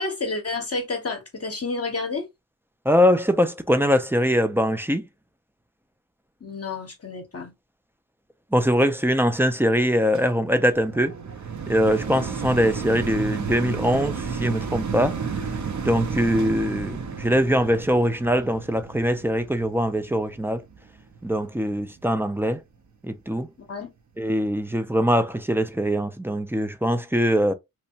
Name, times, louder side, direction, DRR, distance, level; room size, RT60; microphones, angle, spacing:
voice 1, 0.0-2.3 6.4-7.5 23.6-23.9, left 3 dB, 40° left, 0.7 m, -30 dB
voice 2, 2.9-5.1 8.5-11.1 11.7-15.3 15.8-20.6 21.2-22.6 23.0-23.5 24.2-27.5, equal, 5° right, 0.3 m, -22 dB
sound 1, 10.1-21.4 22.0-22.1, right 5 dB, 55° right, 0.6 m, -32 dB
2.9 x 2.1 x 2.7 m
wide cardioid pair, 70°, 36 cm